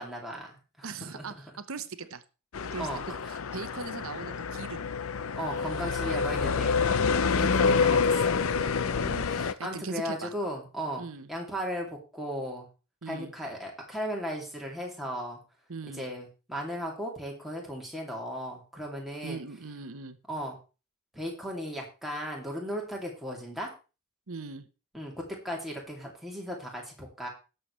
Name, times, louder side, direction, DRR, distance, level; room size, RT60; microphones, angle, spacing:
voice 1, 0.0-1.3 2.8-3.0 5.3-8.5 8.8-9.0 9.3-12.7 13.1-15.4 16.0-19.4 20.3-20.6 21.1-23.7 24.9-27.3, equal, ahead, -2 dB, 2.5 m, -36 dB
voice 2, 0.8-2.2 2.7-4.9 5.8-6.6 7.5-7.6 8.4-9.3 9.6-10.3 11.0-11.3 13.0-13.3 15.7-16.1 19.2-20.2 24.3-24.7, right 4 dB, 75° right, 11 dB, 0.9 m, -40 dB
sound 1, 2.5-9.5, left 5 dB, 70° left, 0.5 m, -27 dB
18.5 x 6.8 x 3.2 m, 0.32 s
head